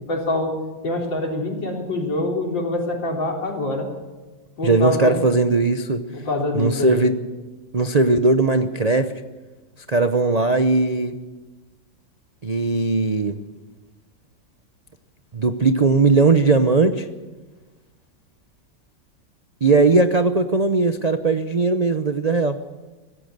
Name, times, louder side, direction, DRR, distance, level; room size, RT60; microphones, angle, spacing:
voice 1, 0.1-0.5 0.8-3.9 4.6-5.2 6.1-7.1, left 1 dB, 70° left, 0 dB, 4.3 m, -25 dB
voice 2, 4.6-6.0 6.5-7.1 7.7-9.1 9.9-11.2 12.4-13.4 15.3-17.1 19.6-22.6, right 3 dB, 85° right, 8 dB, 0.3 m, -18 dB
25.0 x 16.0 x 6.7 m, 1.3 s
omnidirectional pair, 2.1 m